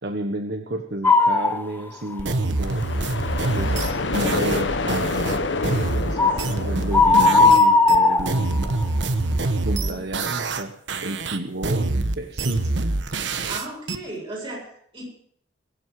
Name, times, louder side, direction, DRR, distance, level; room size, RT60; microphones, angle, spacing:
voice 1, 0.0-2.9 3.5-5.3 6.0-9.1 9.6-10.7 11.0-13.0, right 1 dB, 60° right, 5 dB, 1.3 m, -32 dB
sound 1, 1.0-1.6 2.1-2.2 6.2-6.5 6.9-8.8, left 3 dB, 10° left, 0.6 m, -16 dB
sound 2, 2.2-7.6 7.9-10.6 10.9-14.0, right 2 dB, 75° right, 1.2 m, -25 dB
sound 3, 2.6-8.3, left 3 dB, 80° left, 1.2 m, -28 dB
voice 2, 13.5-15.1, right 1 dB, 30° right, -3 dB, 7.8 m, -35 dB
22.0 x 7.9 x 6.6 m, 0.63 s
head